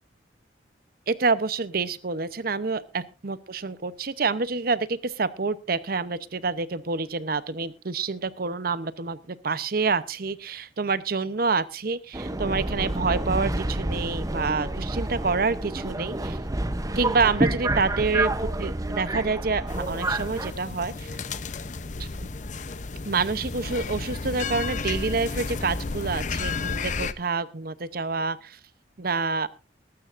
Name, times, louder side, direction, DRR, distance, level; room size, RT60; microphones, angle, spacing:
voice 1, 1.1-16.4 16.9-21.2 22.0-22.3 23.0-28.6 29.0-29.5, right 4 dB, 55° right, 16 dB, 0.8 m, -27 dB
Subway metro underground, 12.1-20.5, right 1 dB, 20° right, 0.7 m, -29 dB
sound 1, 19.7-27.1, left 4 dB, 40° left, 0.7 m, -32 dB
21.0 x 12.5 x 2.5 m, 0.29 s
head